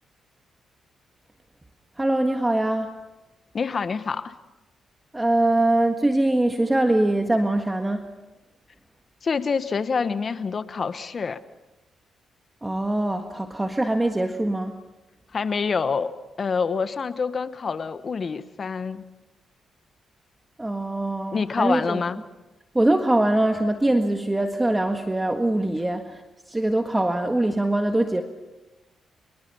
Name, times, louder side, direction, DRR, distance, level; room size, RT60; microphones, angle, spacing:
voice 1, 2.0-2.9 5.1-8.1 12.6-14.8 20.6-22.0 22.7-28.2, right 1 dB, 15° right, 5 dB, 1.6 m, -23 dB
voice 2, 3.5-4.3 9.2-11.4 15.3-19.0 21.3-22.2, left 5 dB, 50° left, 13 dB, 1.2 m, -26 dB
24.5 x 23.5 x 5.6 m, 1.1 s
supercardioid pair, 65°, 0 cm